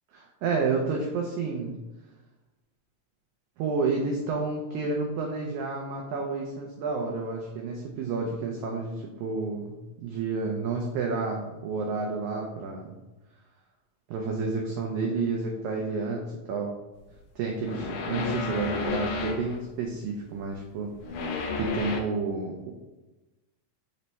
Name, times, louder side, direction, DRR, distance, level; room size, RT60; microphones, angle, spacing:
voice 1, 0.1-1.8 3.6-13.0 14.1-16.7 17.3-22.7, right 4 dB, 80° right, 0 dB, 1.7 m, -30 dB
sound 1, 17.7-19.6 21.0-22.0, left 5 dB, 80° left, 1.9 m, -31 dB
5.4 x 2.1 x 4.0 m, 1.1 s
omnidirectional pair, 3.8 m